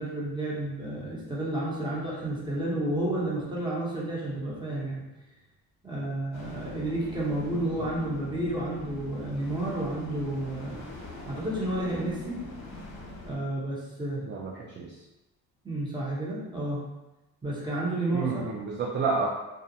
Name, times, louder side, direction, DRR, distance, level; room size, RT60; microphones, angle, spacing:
voice 1, 0.0-5.0 5.8-10.8 11.3-12.4 13.2-14.3 15.6-16.9 17.4-18.5, right 1 dB, 10° right, -6 dB, 0.9 m, -31 dB
sound 1, 6.3-13.4, left 2 dB, 50° left, 0.9 m, -43 dB
voice 2, 14.3-14.9 18.1-19.3, right 4 dB, 30° right, -2 dB, 0.3 m, -30 dB
2.4 x 2.1 x 2.7 m, 0.99 s
supercardioid pair, 75°, 39 cm